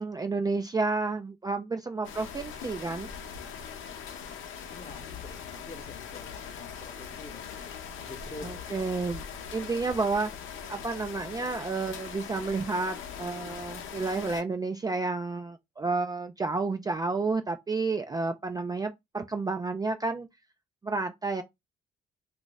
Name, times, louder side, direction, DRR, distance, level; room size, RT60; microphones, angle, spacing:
voice 1, 0.0-3.1 8.4-9.2 9.5-10.3 10.7-20.3 20.8-21.4, right 3 dB, 20° right, 0.3 m, -30 dB
sound 1, 2.0-14.4, left 7 dB, 80° left, 0.7 m, -41 dB
voice 2, 4.7-7.6 7.8-8.8, left 3 dB, 30° left, 0.8 m, -47 dB
2.5 x 2.4 x 3.8 m
cardioid pair, 90°, 20 cm